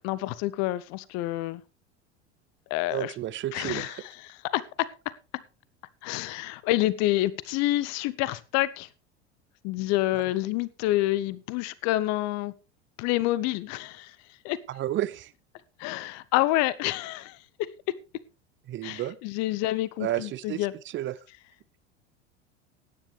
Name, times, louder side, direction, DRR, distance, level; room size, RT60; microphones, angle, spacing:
voice 1, 0.0-1.6 2.7-3.1 3.5-4.9 6.0-8.9 9.6-12.5 13.0-14.2 14.4-14.6 15.8-17.4 18.8-20.7, left 16 dB, 50° left, 0.8 m, -28 dB
voice 2, 2.9-4.0 10.1-10.2 14.7-15.3 18.7-19.2 20.0-21.2, right 13 dB, 35° right, 0.8 m, -32 dB
16.0 x 10.0 x 3.3 m
figure-of-eight pair, 80°, 35 cm